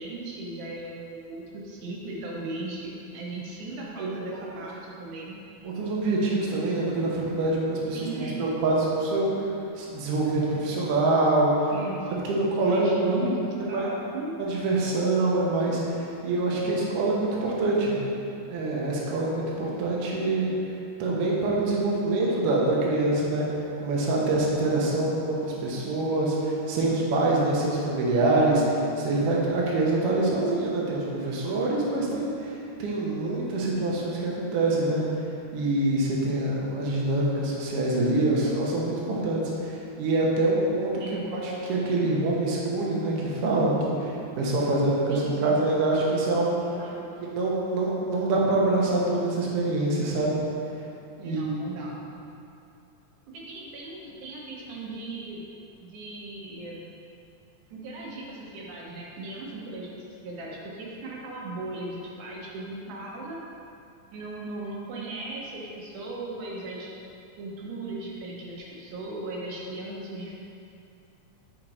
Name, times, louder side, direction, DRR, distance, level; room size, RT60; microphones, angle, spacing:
voice 1, 0.0-5.4 7.9-8.4 11.7-14.4 16.5-16.7 41.0-41.3 45.1-45.6 46.6-47.1 51.2-51.9 53.3-55.4 55.9-56.9 57.7-63.4 64.1-66.9 67.4-70.3, right 2 dB, 80° right, -3 dB, 2.4 m, -38 dB
voice 2, 5.6-9.5 9.8-11.7 12.2-13.3 13.7-13.9 14.4-18.0 18.5-20.5 21.0-23.5 23.8-35.1 35.5-40.9 41.3-46.6 47.2-50.4 51.2-51.7, right 2 dB, 65° right, -4 dB, 1.5 m, -25 dB
5.5 x 5.0 x 4.2 m, 2.7 s
omnidirectional pair, 3.5 m